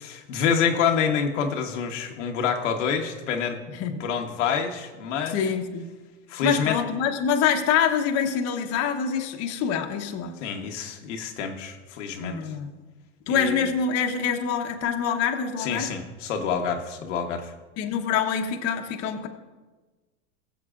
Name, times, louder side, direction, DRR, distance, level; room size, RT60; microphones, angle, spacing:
voice 1, 0.0-3.6 4.0-5.4 6.3-6.8 10.4-12.4 13.3-13.7 15.6-17.5, left 6 dB, 75° left, 3 dB, 1.2 m, -27 dB
voice 2, 3.7-4.0 5.3-5.9 6.4-10.3 12.2-12.7 13.3-15.9 17.8-19.3, left 7 dB, 40° left, 3 dB, 1.1 m, -25 dB
21.0 x 7.7 x 2.5 m, 1.3 s
supercardioid pair, 125°, 36 cm